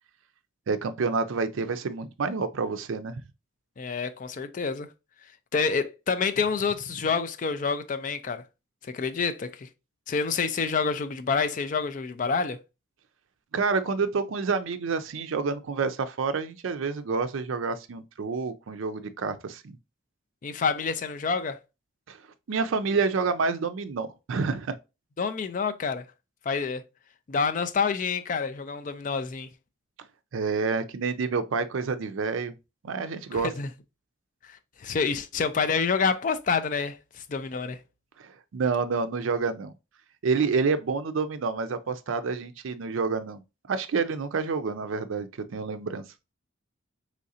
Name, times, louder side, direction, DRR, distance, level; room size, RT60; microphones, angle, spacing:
voice 1, 0.7-3.2 13.5-19.8 22.1-22.2 22.5-24.8 30.3-32.5 32.8-33.5 38.2-39.7 40.2-43.4 43.7-46.0, right 4 dB, 80° right, 0.4 m, -28 dB
voice 2, 3.8-4.9 5.5-8.4 8.8-9.7 10.1-12.6 20.4-21.6 25.2-26.1 26.5-26.9 27.3-29.5 33.3-33.7 34.4-37.8, left 5 dB, 40° left, 0.3 m, -28 dB
3.7 x 3.1 x 2.7 m
head